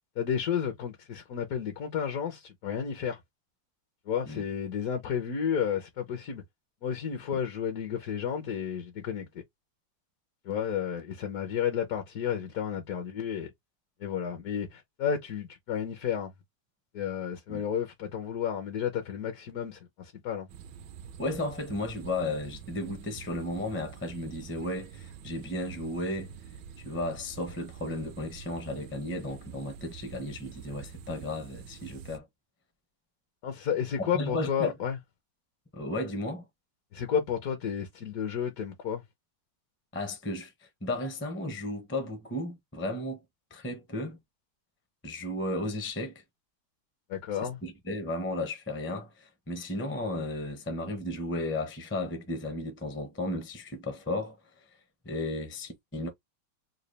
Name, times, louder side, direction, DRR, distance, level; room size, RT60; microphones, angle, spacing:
voice 1, 0.2-3.2 4.1-6.4 6.8-9.3 10.4-13.5 14.0-16.3 16.9-20.5 33.4-35.0 36.9-39.0 47.1-47.6, left 8 dB, 60° left, 1.1 m, -32 dB
sound 1, 20.5-32.2, right 7 dB, 75° right, 1.2 m, -47 dB
voice 2, 21.2-26.3 26.8-32.3 34.0-34.7 35.7-36.4 39.9-40.5 40.8-43.2 43.5-44.2 45.0-46.2 47.4-54.4 55.0-56.1, left 1 dB, 15° left, 0.4 m, -34 dB
3.9 x 2.3 x 3.2 m
omnidirectional pair, 2.0 m